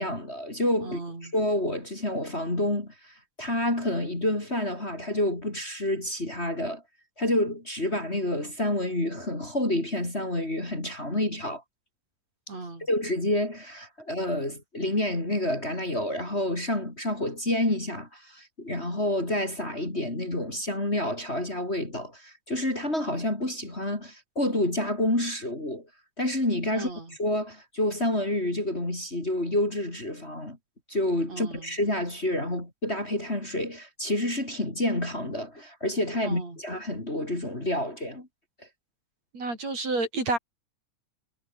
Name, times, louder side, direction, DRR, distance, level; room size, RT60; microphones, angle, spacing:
voice 1, 0.0-6.8 7.2-11.6 12.8-25.9 26.2-30.6 30.9-38.3, left 1 dB, 20° left, 4.5 m, -28 dB
voice 2, 0.8-1.3 12.5-12.9 26.7-27.1 31.3-31.7 36.2-36.6 39.3-40.4, right 3 dB, 60° right, 9.1 m, -32 dB
omnidirectional pair, 3.4 m